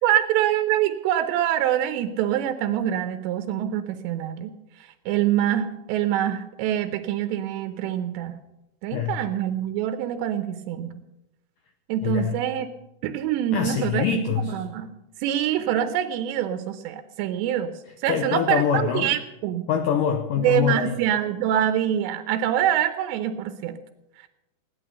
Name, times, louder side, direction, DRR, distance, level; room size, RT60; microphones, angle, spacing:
voice 1, 0.0-4.5 5.1-8.4 8.8-10.9 11.9-12.7 13.0-14.9 15.2-17.7 18.0-19.7 20.4-23.8 24.2-24.3, right 11 dB, 85° right, 9 dB, 2.9 m, -25 dB
voice 2, 12.0-12.4 13.5-14.6 18.1-19.1 19.7-21.0, left 8 dB, 85° left, 6 dB, 1.9 m, -24 dB
17.0 x 11.0 x 6.8 m, 0.92 s
omnidirectional pair, 5.0 m